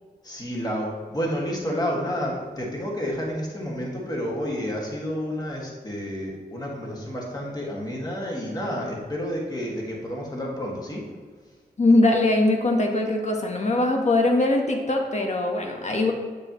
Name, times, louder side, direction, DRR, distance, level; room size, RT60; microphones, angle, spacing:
voice 1, 0.2-11.0, equal, 25° left, -2 dB, 2.0 m, -30 dB
voice 2, 11.8-16.1, left 2 dB, 45° left, 2 dB, 1.2 m, -21 dB
7.1 x 6.7 x 3.1 m, 1.5 s
wide cardioid pair, 85°, 17 cm